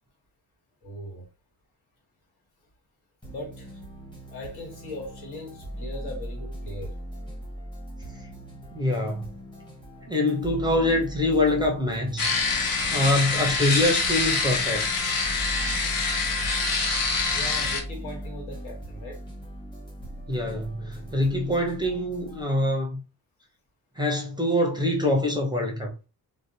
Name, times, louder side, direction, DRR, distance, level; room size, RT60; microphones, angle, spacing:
voice 1, 0.8-1.3 3.3-3.8 4.3-7.0 13.2-13.3 16.1-16.3 17.3-19.2, left 1 dB, 85° left, 1.3 m, -39 dB
sound 1, 3.2-22.4, right 1 dB, 10° left, 0.8 m, -39 dB
voice 2, 8.7-9.3 10.1-12.4 12.9-14.9 20.3-23.0 24.0-25.9, left 1 dB, 10° right, 0.5 m, -24 dB
sound 2, 12.2-17.8, left 4 dB, 60° left, 0.7 m, -25 dB
2.6 x 2.0 x 2.6 m
cardioid pair, 105°, 38 cm